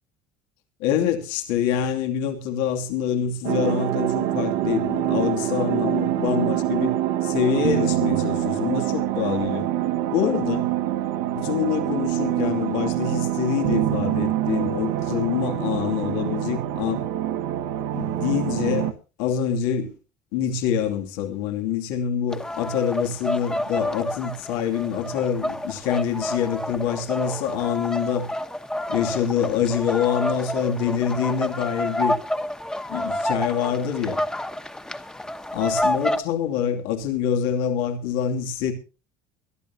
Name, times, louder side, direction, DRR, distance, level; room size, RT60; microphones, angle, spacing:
voice 1, 0.8-6.9 7.2-9.7 10.1-10.7 11.3-17.0 17.9-19.9 20.3-28.3 28.9-32.2 32.9-34.2 35.5-38.7, left 8 dB, 85° left, 2.7 m, -25 dB
sound 1, 3.4-18.9, right 12 dB, 80° right, 1.4 m, -25 dB
sound 2, 22.3-36.2, left 1 dB, 5° left, 1.1 m, -29 dB
22.5 x 13.5 x 2.8 m
cardioid pair, 125°, 11 cm